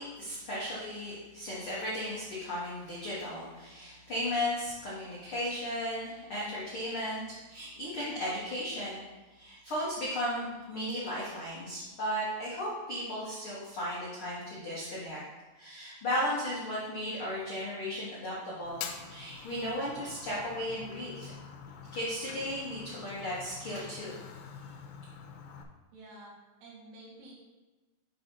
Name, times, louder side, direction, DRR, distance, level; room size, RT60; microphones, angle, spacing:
voice 1, 0.0-9.0 9.3-15.2 15.5-21.3 21.9-24.2, equal, 70° left, -8 dB, 1.2 m, -35 dB
Fire, 18.7-25.6, left 6 dB, 85° left, 2.7 m, -46 dB
voice 2, 25.9-26.3 26.6-27.3, right 1 dB, 80° right, -4 dB, 3.7 m, -50 dB
7.6 x 3.7 x 5.4 m, 1.2 s
omnidirectional pair, 4.8 m